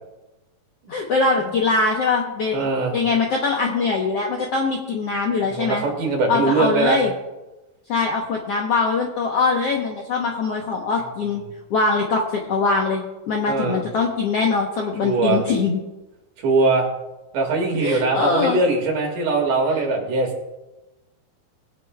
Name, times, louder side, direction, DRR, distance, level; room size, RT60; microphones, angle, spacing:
voice 1, 0.9-5.8 6.3-7.1 7.9-11.4 11.7-15.8 17.7-18.6, left 4 dB, 70° left, 0 dB, 1.5 m, -22 dB
voice 2, 2.5-2.9 5.5-7.0 13.5-13.8 15.0-15.4 16.4-16.9 17.3-20.5, right 3 dB, 65° right, 2 dB, 3.4 m, -21 dB
21.0 x 9.7 x 2.3 m, 1.1 s
omnidirectional pair, 4.1 m